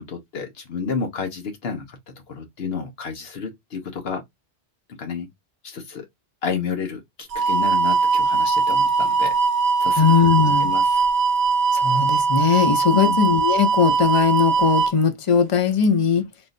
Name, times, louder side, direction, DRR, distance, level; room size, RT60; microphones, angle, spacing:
voice 1, 0.0-2.0 2.3-4.2 5.0-5.3 5.6-6.1 6.4-9.3 9.8-10.1 10.6-11.0 12.9-13.2, left 5 dB, 70° left, 1.1 m, -30 dB
sound 1, 7.3-14.9, right 4 dB, 70° right, 0.9 m, -20 dB
voice 2, 10.0-10.7 11.7-16.2, left 6 dB, 35° left, 0.6 m, -19 dB
3.6 x 2.5 x 2.5 m
omnidirectional pair, 1.1 m